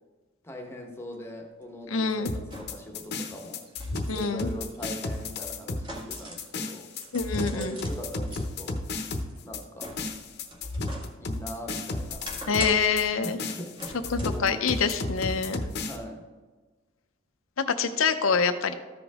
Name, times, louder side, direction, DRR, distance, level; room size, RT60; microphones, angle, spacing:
voice 1, 0.4-3.7 4.1-6.9 7.3-8.8 9.4-10.0 11.2-12.3 13.2-15.1 15.8-16.3, equal, 15° left, 2 dB, 1.1 m, -41 dB
sound 1, 1.1-1.2 2.4-2.9 3.4-6.5 6.9-8.4 9.0-11.1 11.5-13.0 13.7-14.4 14.9-15.0, right 1 dB, 25° right, 1.7 m, -43 dB
voice 2, 1.9-2.3 4.1-4.5 7.1-7.8 12.5-13.4 14.1-15.6 17.6-18.7, left 5 dB, 85° left, 9 dB, 0.7 m, -26 dB
sound 2, 2.3-16.0, left 2 dB, 55° left, 0.9 m, -33 dB
13.5 x 5.2 x 3.6 m, 1.3 s
head